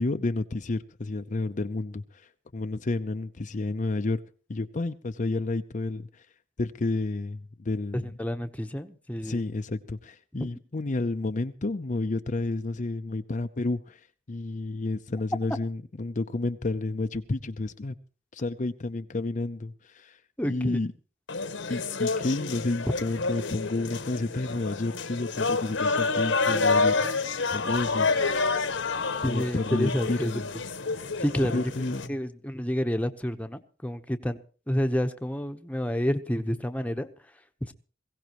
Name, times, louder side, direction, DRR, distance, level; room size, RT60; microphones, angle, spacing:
voice 1, 0.0-4.2 4.5-6.3 6.6-8.1 9.2-17.9 18.3-20.2 20.5-20.9 21.7-27.0 27.5-28.1 29.2-30.5 31.5-32.1, left 2 dB, 40° left, 7 dB, 0.6 m, -30 dB
voice 2, 7.9-9.4 10.4-10.5 20.4-20.8 29.2-30.3 31.2-31.7 32.1-34.4 34.7-37.1 37.6-37.7, equal, 10° left, 7 dB, 1.0 m, -29 dB
sound 1, 21.3-32.1, left 4 dB, 75° left, 1.3 m, -28 dB
21.5 x 16.5 x 3.1 m, 0.38 s
head